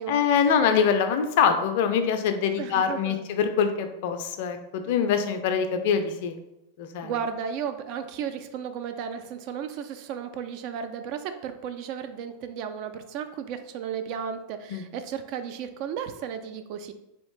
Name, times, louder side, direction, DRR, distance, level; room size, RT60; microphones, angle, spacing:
voice 1, 0.1-6.3 6.8-7.1 14.7-14.8, left 7 dB, 50° left, 7 dB, 0.4 m, -24 dB
voice 2, 2.6-3.2 7.0-16.9, right 7 dB, 45° right, 8 dB, 0.3 m, -34 dB
3.5 x 2.4 x 3.6 m, 0.89 s
figure-of-eight pair, 90°, 0 cm